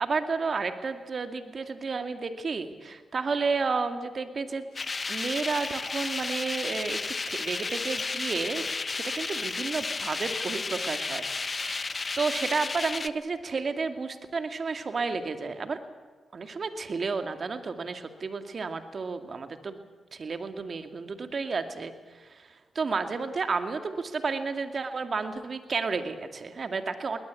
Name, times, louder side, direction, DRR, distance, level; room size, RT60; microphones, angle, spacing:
voice 1, 0.0-4.6 5.1-7.0 7.3-8.6 8.9-15.8 16.3-19.8 20.1-22.5 22.8-27.2, right 4 dB, 55° right, 8 dB, 2.2 m, -31 dB
sound 1, 4.7-12.2, left 4 dB, 75° left, 5.7 m, -58 dB
sound 2, 4.8-13.1, left 4 dB, 40° left, 0.8 m, -33 dB
21.0 x 19.0 x 8.4 m, 1.4 s
supercardioid pair, 50°, 0 cm